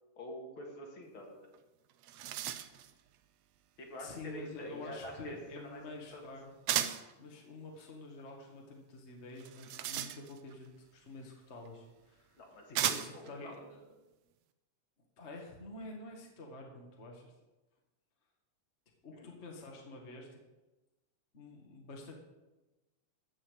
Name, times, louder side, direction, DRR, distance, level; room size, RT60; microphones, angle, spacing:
voice 1, 0.2-1.5 3.8-5.8 6.1-6.3 12.4-13.6 19.1-19.3, equal, 45° left, 0 dB, 2.4 m, -47 dB
sound 1, 1.5-1.6 1.9-2.9 6.7-7.1 9.4-10.6 11.7-11.8 12.7-13.3, right 11 dB, 80° right, 1.5 m, -35 dB
voice 2, 4.0-6.5 7.2-12.4 12.8-14.2 15.2-17.3 19.0-20.4 21.3-22.1, left 2 dB, 30° left, 0 dB, 1.4 m, -48 dB
14.0 x 5.6 x 8.3 m, 1.1 s
omnidirectional pair, 3.7 m